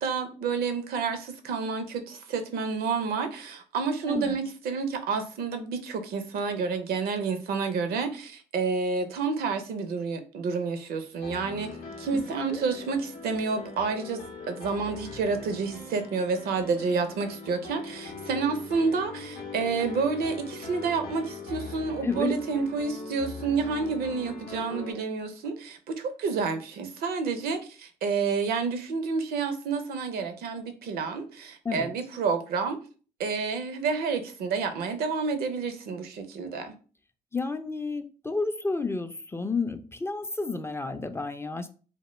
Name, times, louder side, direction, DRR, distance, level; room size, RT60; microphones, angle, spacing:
voice 1, 0.0-11.7 12.0-32.8 33.2-36.7, right 5 dB, 70° right, 8 dB, 0.5 m, -29 dB
Piano, 11.2-24.9, left 3 dB, 75° left, 0.5 m, -41 dB
voice 2, 22.0-22.3 31.7-31.9 37.3-41.7, left 3 dB, 15° left, 8 dB, 0.3 m, -31 dB
2.1 x 2.1 x 3.0 m, 0.37 s
hypercardioid pair, 45°, 16 cm